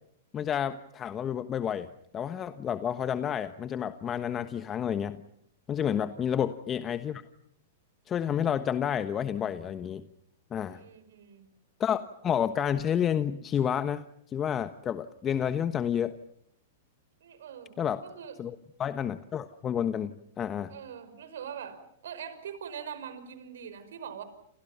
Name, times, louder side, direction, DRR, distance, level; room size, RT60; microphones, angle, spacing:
voice 1, 0.3-1.9 2.1-5.2 5.7-7.2 8.1-10.0 10.5-10.8 11.8-16.1 17.8-18.0 18.4-20.8, left 9 dB, 25° left, 10 dB, 1.2 m, -30 dB
voice 2, 6.0-6.3 10.7-11.5 15.3-15.6 17.2-18.4 20.7-24.2, right 8 dB, 70° right, 12 dB, 5.2 m, -43 dB
29.5 x 29.0 x 5.7 m, 0.72 s
hypercardioid pair, 110°, 0 cm